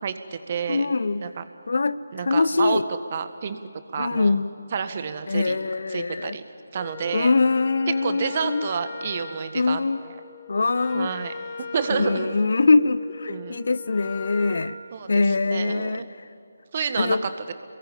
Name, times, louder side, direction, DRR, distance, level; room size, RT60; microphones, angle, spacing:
voice 1, 0.0-0.9 1.2-1.4 2.1-2.8 3.1-3.6 3.9-4.4 4.7-5.6 5.9-6.4 6.7-7.3 8.0-10.1 10.9-11.3 11.7-12.3 13.3-13.7 14.9-16.1 16.7-17.2 17.5-17.6, right 6 dB, 35° right, 10 dB, 1.7 m, -29 dB
voice 2, 0.7-1.2 1.7-2.8 4.0-4.5 5.3-6.4 7.1-8.7 9.5-10.0 10.5-11.1 11.9-14.7 15.1-16.0 17.0-17.2, left 3 dB, 60° left, 17 dB, 0.8 m, -23 dB
Wind instrument woodwind instrument, 6.7-14.7, left 5 dB, 20° left, 2.5 m, -40 dB
29.0 x 22.0 x 8.8 m, 2.5 s
figure-of-eight pair, 150°, 0 cm